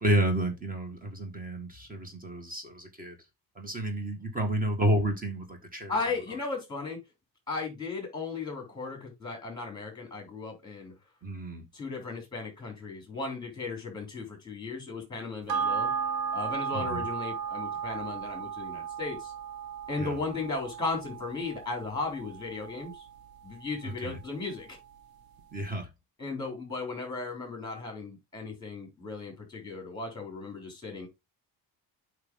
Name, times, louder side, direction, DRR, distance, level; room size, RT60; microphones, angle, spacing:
voice 1, 0.0-3.2 3.6-5.9 11.2-11.6 16.7-17.0 20.0-20.2 23.8-24.2 25.5-25.9, right 1 dB, 20° right, 1.8 m, -30 dB
voice 2, 5.9-7.0 7.5-10.9 11.7-15.9 16.3-19.3 19.9-23.1 23.4-24.8 26.2-31.1, left 3 dB, 10° left, 3.5 m, -36 dB
sound 1, 15.5-24.2 24.6-24.7, right 6 dB, 60° right, 1.0 m, -35 dB
8.1 x 5.0 x 3.8 m
cardioid pair, 165°, 40 cm